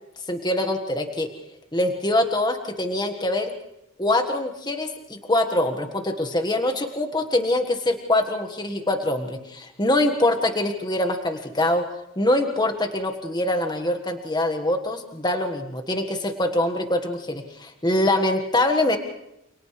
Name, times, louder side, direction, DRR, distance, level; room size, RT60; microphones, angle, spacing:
voice 1, 0.3-1.3 1.7-3.5 4.0-11.8 12.2-19.0, left 1 dB, 20° left, 6 dB, 1.6 m, -24 dB
29.5 x 28.5 x 3.3 m, 0.85 s
head